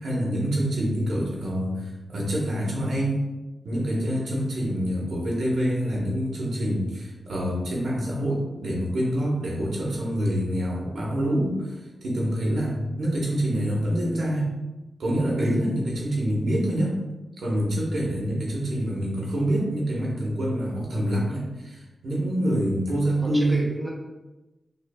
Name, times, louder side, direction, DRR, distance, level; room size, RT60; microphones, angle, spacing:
voice 1, 0.0-3.2 3.6-11.8 12.0-14.5 15.0-17.0 17.4-23.6, equal, 80° right, -3 dB, 1.1 m, -26 dB
voice 2, 18.7-19.0 22.9-23.9, right 1 dB, 15° right, -2 dB, 0.6 m, -34 dB
5.5 x 2.3 x 2.2 m, 1.1 s
wide cardioid pair, 180°, 0 cm